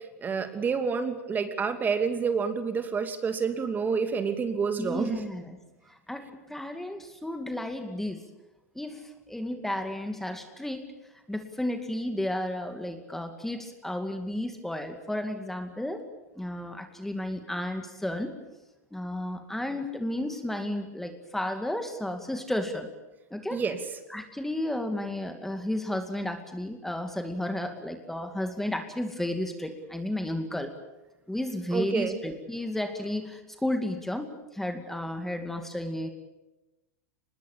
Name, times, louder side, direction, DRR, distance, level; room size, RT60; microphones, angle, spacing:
voice 1, 0.2-5.2 23.5-23.8 31.7-32.2, right 5 dB, 20° right, 8 dB, 2.7 m, -28 dB
voice 2, 4.8-5.6 6.1-8.3 8.7-10.9 11.3-16.0 16.4-18.3 18.9-22.9 23.3-23.6 24.1-30.7 31.3-36.1, left 1 dB, 5° left, 6 dB, 2.3 m, -33 dB
24.5 x 21.0 x 8.5 m, 1.0 s
hypercardioid pair, 120°, 8 cm